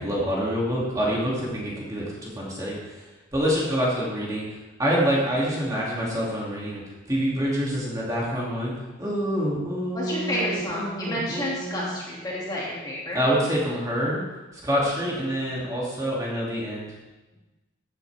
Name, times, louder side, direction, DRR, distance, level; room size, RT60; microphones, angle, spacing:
voice 1, 0.0-3.1 3.3-4.4 4.8-6.8 7.1-8.7 9.0-11.9 13.1-14.2 14.6-16.9, equal, 15° right, -5 dB, 2.6 m, -26 dB
voice 2, 9.9-13.2, equal, 20° left, -6 dB, 2.4 m, -30 dB
14.5 x 9.5 x 3.5 m, 1.1 s
head